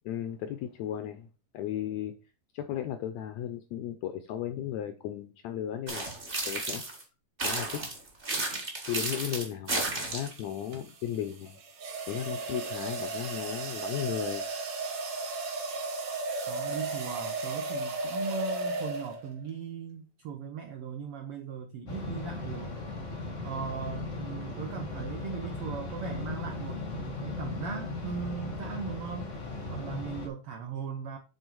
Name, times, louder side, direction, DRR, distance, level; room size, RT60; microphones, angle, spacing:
voice 1, 0.0-1.3 1.5-2.1 2.5-6.1 6.5-6.8 7.4-7.8 8.9-11.6 12.1-14.4, left 10 dB, 80° left, 1.6 m, -35 dB
sound 1, 5.9-7.0 7.4-10.4, right 2 dB, 30° right, 0.9 m, -33 dB
sound 2, 8.2-8.5 10.2-19.4, right 3 dB, 60° right, 2.8 m, -35 dB
voice 2, 16.5-22.8 23.4-29.3 29.7-31.2, right 6 dB, 75° right, 1.3 m, -38 dB
sound 3, 21.9-30.3, left 3 dB, 60° left, 0.7 m, -37 dB
7.9 x 3.8 x 4.6 m
omnidirectional pair, 3.7 m